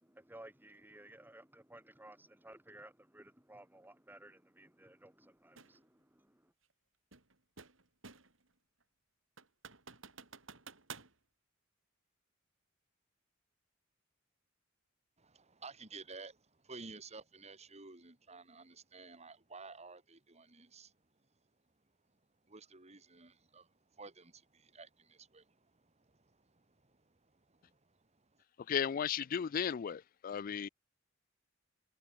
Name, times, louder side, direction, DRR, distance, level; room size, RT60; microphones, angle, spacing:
voice 1, 0.0-6.5, right 1 dB, 10° right, 3.7 m, -56 dB
sound 1, 5.6-5.8 7.1-8.4 8.8-8.9 9.4-11.1, right 5 dB, 75° right, 6.3 m, -52 dB
voice 2, 15.2-20.9 22.5-28.4, right 4 dB, 35° right, 3.1 m, -54 dB
voice 3, 28.7-30.7, left 8 dB, 45° left, 0.4 m, -35 dB
head